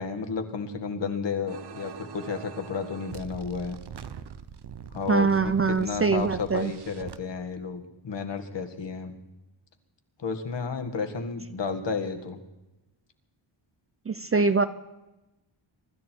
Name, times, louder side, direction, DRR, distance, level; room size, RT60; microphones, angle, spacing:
voice 1, 0.0-3.8 4.9-9.1 10.2-12.4, left 5 dB, 60° left, 6 dB, 2.0 m, -32 dB
sound 1, 1.5-7.2, right 7 dB, 55° right, 0.9 m, -43 dB
voice 2, 5.1-6.7 14.1-14.6, right 4 dB, 30° right, 12 dB, 0.5 m, -23 dB
24.0 x 13.0 x 4.6 m, 1.0 s
wide cardioid pair, 160°, 49 cm